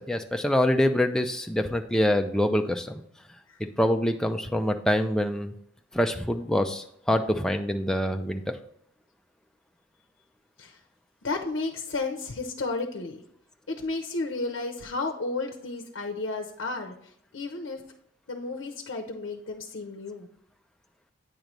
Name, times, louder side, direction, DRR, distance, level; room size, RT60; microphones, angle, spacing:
voice 1, 0.0-3.0 3.6-5.5 5.9-8.6, left 1 dB, 5° left, 5 dB, 0.3 m, -25 dB
voice 2, 11.2-13.2 13.7-17.8 18.3-20.3, left 3 dB, 70° left, 3 dB, 0.6 m, -33 dB
9.0 x 3.1 x 5.1 m, 0.70 s
head